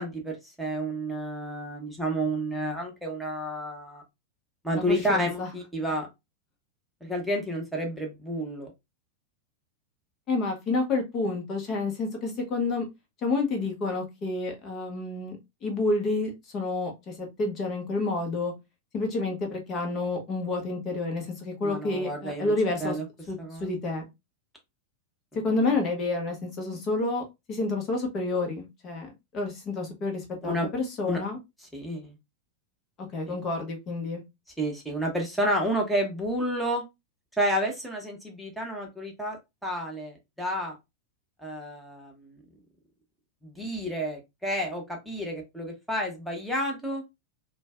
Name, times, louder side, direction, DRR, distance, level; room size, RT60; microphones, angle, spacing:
voice 1, 0.0-4.0 4.6-6.1 7.0-8.7 21.6-22.5 22.8-23.0 23.4-23.7 25.3-25.4 30.4-30.7 31.1-31.2 31.7-32.1 33.3-33.4 34.6-36.8 37.4-39.4 39.6-40.8 41.4-42.4 43.4-47.0, equal, ahead, -1 dB, 1.0 m, -30 dB
voice 2, 4.7-5.5 10.3-12.8 13.2-15.4 15.6-18.5 18.9-23.0 23.3-24.0 25.4-31.4 33.1-34.2, left 3 dB, 30° left, 2 dB, 1.0 m, -29 dB
4.4 x 2.3 x 2.4 m, 0.22 s
figure-of-eight pair, 90°, 0 cm